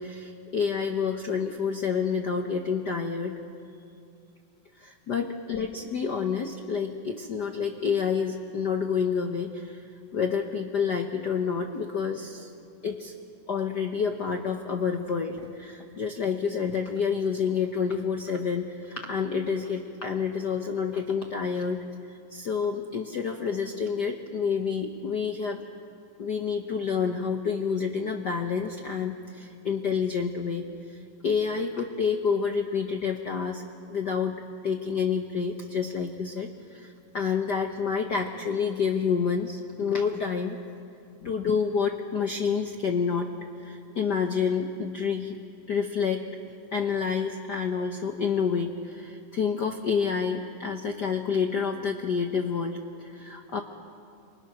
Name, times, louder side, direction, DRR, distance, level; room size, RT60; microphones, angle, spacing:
voice 1, 0.0-3.3 4.8-9.8 10.1-12.5 12.8-13.1 13.5-21.8 22.1-25.6 26.2-33.6 33.9-34.3 34.6-40.6 41.2-43.3 43.6-45.4 45.7-46.2 46.7-53.6, left 6 dB, 70° left, 4 dB, 1.0 m, -28 dB
28.0 x 25.5 x 6.3 m, 2.5 s
omnidirectional pair, 3.4 m